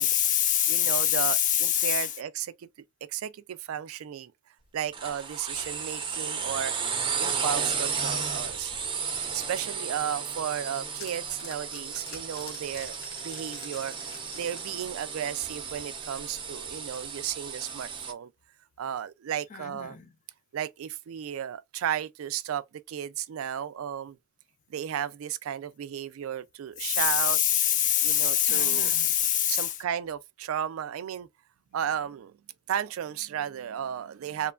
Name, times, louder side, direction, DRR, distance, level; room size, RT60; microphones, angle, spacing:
voice 1, 0.0-2.2 19.5-20.1 26.8-29.8, left 11 dB, 40° left, 0.3 m, -25 dB
voice 2, 0.7-2.7 3.1-4.3 4.7-6.7 7.2-8.7 9.3-13.0 13.2-18.3 18.8-20.0 20.5-24.2 24.7-27.4 28.0-28.9 29.5-31.3 31.7-32.4 32.7-34.5, right 9 dB, 80° right, 0.3 m, -34 dB
sound 1, 4.9-18.1, right 6 dB, 25° right, 0.6 m, -34 dB
sound 2, 10.3-15.8, left 4 dB, 80° left, 1.1 m, -48 dB
3.0 x 2.2 x 2.3 m
head